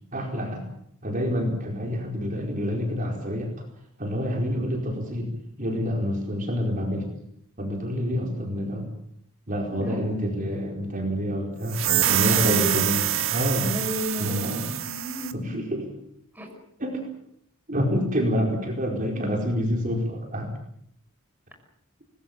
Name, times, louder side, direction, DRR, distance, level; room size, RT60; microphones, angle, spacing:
voice 1, 0.1-0.7 1.0-3.5 4.0-5.3 5.6-7.1 7.6-8.9 9.5-13.0 13.3-13.7 14.2-14.7 15.3-15.9 16.8-17.0 17.7-20.5, equal, 40° right, 1 dB, 4.6 m, -27 dB
voice 2, 9.7-10.1 11.9-12.9 13.6-15.7 16.3-16.5, equal, 10° right, 2 dB, 5.6 m, -33 dB
sound 1, 11.7-15.4, right 12 dB, 65° right, 1.6 m, -25 dB
25.0 x 20.5 x 7.4 m, 0.69 s
head